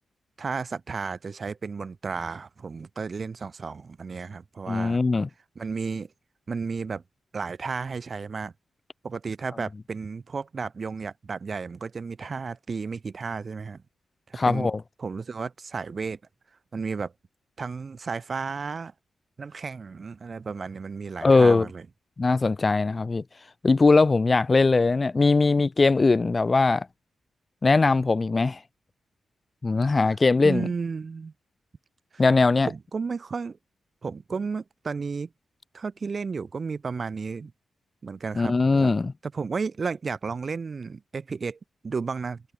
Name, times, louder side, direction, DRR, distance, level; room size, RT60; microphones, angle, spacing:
voice 1, 0.4-5.0 5.5-6.1 6.5-7.0 7.3-8.5 9.0-13.8 14.3-14.7 15.0-16.2 16.7-17.1 17.6-18.9 19.4-21.9 29.9-30.2 30.4-31.3 32.1-32.2 32.7-33.6 34.0-35.3 35.7-37.5 38.0-38.9 39.2-42.4, right 5 dB, 35° right, 7.9 m, -33 dB
voice 2, 4.7-5.3 14.4-14.8 21.2-21.7 22.2-23.2 23.6-26.9 27.6-28.6 29.6-30.7 32.2-32.7 38.4-39.1, left 3 dB, 25° left, 2.1 m, -20 dB
wide cardioid pair, 160°, 0 cm